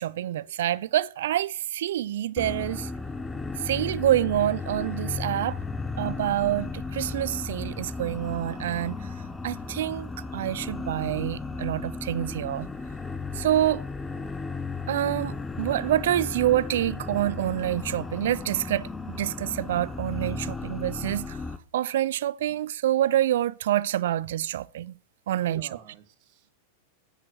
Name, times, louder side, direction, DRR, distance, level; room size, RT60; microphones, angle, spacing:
voice 1, 0.0-2.9 3.6-5.6 6.0-9.0 9.4-12.7 13.4-13.8 14.9-21.4 21.7-24.9 25.3-25.7, right 12 dB, 75° right, 0.4 m, -27 dB
sound 1, 2.4-21.6, left 4 dB, 10° left, 0.9 m, -35 dB
voice 2, 25.3-26.5, right 9 dB, 50° right, 1.6 m, -48 dB
8.6 x 6.4 x 6.4 m
hypercardioid pair, 125°, 0 cm